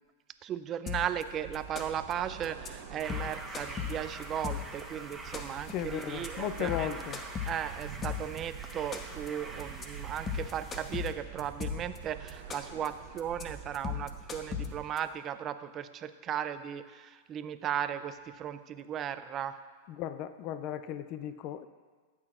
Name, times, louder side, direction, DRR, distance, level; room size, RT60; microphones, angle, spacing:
voice 1, 0.4-6.9 7.5-19.6, right 9 dB, 30° right, 12 dB, 0.5 m, -36 dB
sound 1, 0.9-1.2 1.5-2.1 2.4-2.7 3.0-4.8 5.1-5.7 6.0-6.3 6.6-8.4 8.7-9.3 9.6-9.8 10.2-12.0 12.3-12.9 13.2-13.4 13.7-15.0, left 8 dB, 25° left, 0.9 m, -37 dB
sound 2, 1.1-14.8, right 7 dB, 65° right, 1.0 m, -46 dB
sound 3, 3.0-11.1, right 2 dB, 10° right, 1.0 m, -45 dB
voice 2, 5.7-7.2 19.9-21.7, left 11 dB, 45° left, 12 dB, 0.4 m, -36 dB
14.0 x 8.4 x 2.5 m, 1.4 s
hypercardioid pair, 120°, 0 cm